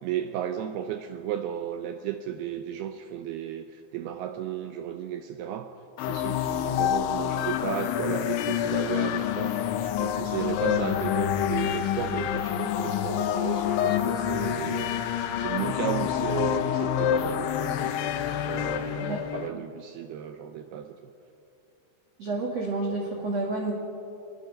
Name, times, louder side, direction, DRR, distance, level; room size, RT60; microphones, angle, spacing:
voice 1, 0.0-5.7 6.0-14.9 15.4-18.0 18.5-21.0, right 10 dB, 90° right, 7 dB, 2.2 m, -34 dB
sound 1, 6.0-19.5, left 10 dB, 80° left, 3.3 m, -27 dB
voice 2, 22.2-23.7, right 2 dB, 50° right, 0 dB, 2.0 m, -29 dB
26.0 x 21.0 x 5.3 m, 2.7 s
omnidirectional pair, 5.5 m